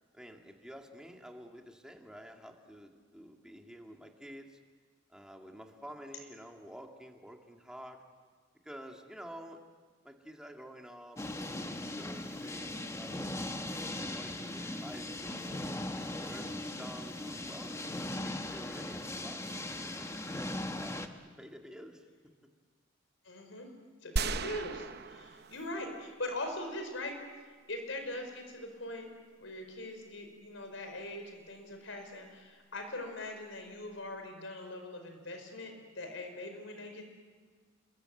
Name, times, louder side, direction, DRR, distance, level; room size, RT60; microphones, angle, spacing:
voice 1, 0.1-4.6 5.1-8.0 8.6-9.7 10.0-13.4 13.9-17.8 18.2-22.1, equal, 5° right, 2 dB, 2.2 m, -50 dB
sound 1, 11.2-21.1, left 1 dB, 15° left, 1.3 m, -39 dB
voice 2, 23.2-23.7 24.0-27.2 27.7-29.1 29.4-37.1, left 1 dB, 85° left, 5 dB, 5.1 m, -41 dB
sound 2, 24.2-26.1 26.4-26.5, right 3 dB, 55° right, 0.8 m, -36 dB
28.0 x 22.5 x 7.9 m, 1.5 s
head